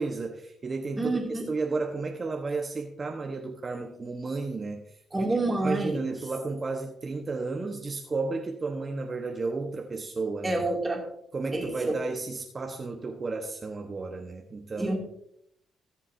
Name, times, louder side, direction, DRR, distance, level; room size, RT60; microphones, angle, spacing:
voice 1, 0.0-4.9 5.1-10.6 11.3-15.0, right 3 dB, 35° right, 2 dB, 1.1 m, -33 dB
voice 2, 1.0-1.5 5.1-6.0 10.4-11.0 11.5-12.0 14.8-15.0, right 2 dB, 15° right, 0 dB, 2.4 m, -28 dB
17.0 x 7.3 x 2.7 m, 0.71 s
cardioid pair, 90°, 0 cm